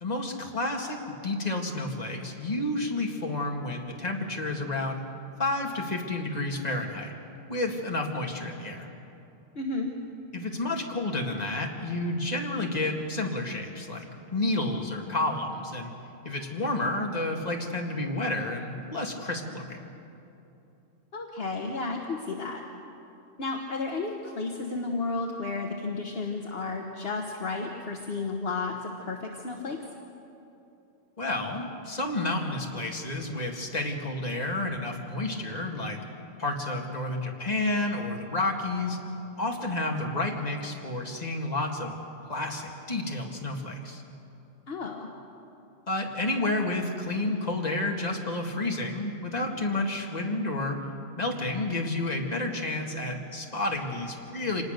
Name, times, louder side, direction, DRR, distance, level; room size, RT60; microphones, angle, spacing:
voice 1, 0.0-5.1 5.4-7.1 7.5-8.9 10.3-14.1 14.3-15.9 16.2-19.8 31.2-36.0 36.4-39.0 39.4-42.0 42.3-44.0 45.9-50.9 51.2-54.6, left 2 dB, 30° left, 1 dB, 2.1 m, -30 dB
voice 2, 9.5-9.9 21.1-22.6 23.4-29.8 44.7-45.1, left 3 dB, 55° left, 2 dB, 1.5 m, -32 dB
26.0 x 19.0 x 6.6 m, 2.8 s
omnidirectional pair, 1.3 m